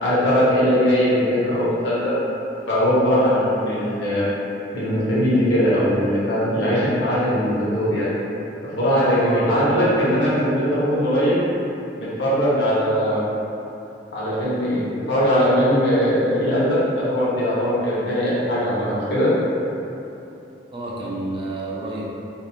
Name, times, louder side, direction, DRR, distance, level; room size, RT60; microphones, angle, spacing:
voice 1, 0.0-2.1 2.7-4.3 4.7-8.1 8.8-11.4 12.0-13.2 14.1-19.3, equal, 85° left, -9 dB, 0.9 m, -20 dB
voice 2, 9.2-9.7 20.7-22.0, right 1 dB, 30° right, -5 dB, 0.4 m, -30 dB
2.6 x 2.0 x 2.9 m, 2.8 s
head